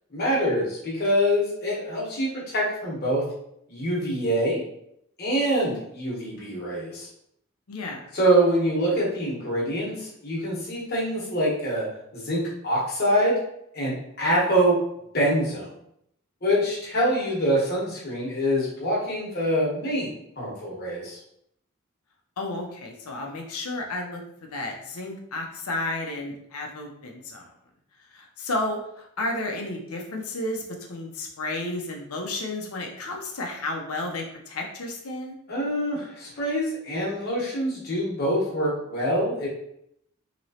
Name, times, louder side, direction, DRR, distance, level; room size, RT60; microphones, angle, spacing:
voice 1, 0.1-3.2 3.7-4.6 5.2-7.1 8.1-11.8 12.1-13.4 13.7-14.8 15.1-15.7 16.4-21.2 35.5-39.5, equal, 45° left, -5 dB, 1.1 m, -25 dB
voice 2, 7.7-8.0 22.4-27.5 28.1-30.6 30.9-35.4, left 2 dB, 85° left, 1 dB, 0.7 m, -32 dB
3.1 x 2.9 x 2.8 m, 0.75 s
head